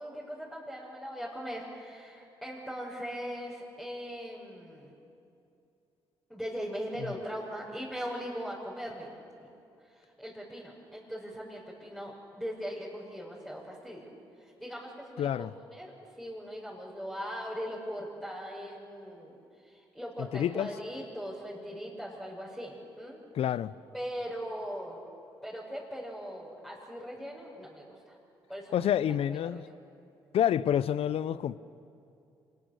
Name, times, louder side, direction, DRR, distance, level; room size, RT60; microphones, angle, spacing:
voice 1, 0.0-5.0 6.3-9.1 9.4-9.5 9.8-14.1 14.4-23.2 23.9-25.0 25.4-28.2 28.5-28.9 29.3-29.6, equal, 5° left, 5.8 m, -40 dB
voice 2, 15.2-15.5 20.2-20.7 23.3-23.7 28.7-29.6 30.3-31.6, left 10 dB, 65° left, 0.6 m, -28 dB
26.0 x 19.5 x 6.7 m
hypercardioid pair, 50°, 11 cm